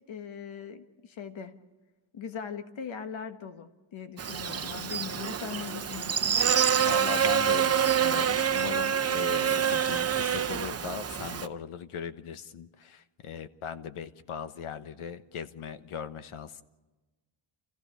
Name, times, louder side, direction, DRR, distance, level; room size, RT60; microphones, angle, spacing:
voice 1, 0.1-1.5 2.1-6.4, left 7 dB, 70° left, 8 dB, 1.5 m, -40 dB
Buzz, 4.2-11.5, right 8 dB, 30° right, 0.7 m, -27 dB
voice 2, 6.7-16.6, left 7 dB, 85° left, 12 dB, 1.2 m, -39 dB
29.5 x 15.0 x 6.7 m, 1.2 s
wide cardioid pair, 130°, 49 cm